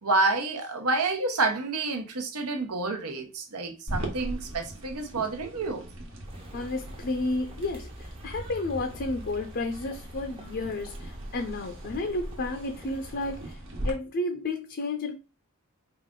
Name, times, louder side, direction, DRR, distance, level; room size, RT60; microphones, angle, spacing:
voice 1, 0.0-5.9, right 3 dB, 80° right, 1.0 m, -28 dB
sound 1, 3.9-13.9, right 1 dB, 60° right, 1.2 m, -40 dB
sound 2, 6.2-13.5, right 1 dB, 25° right, 0.8 m, -45 dB
voice 2, 6.5-13.6 13.8-15.1, left 2 dB, 50° left, 0.5 m, -32 dB
4.9 x 2.5 x 3.7 m
head